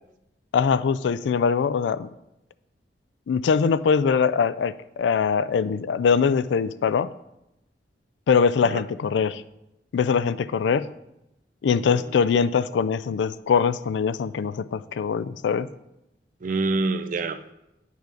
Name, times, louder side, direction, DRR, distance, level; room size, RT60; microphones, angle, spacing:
voice 1, 0.5-2.1 3.3-7.1 8.3-9.4 9.9-10.9 11.6-15.7, left 6 dB, 80° left, 15 dB, 0.3 m, -22 dB
voice 2, 16.4-17.5, right 3 dB, 45° right, 10 dB, 0.5 m, -27 dB
9.0 x 5.6 x 3.8 m, 0.89 s
head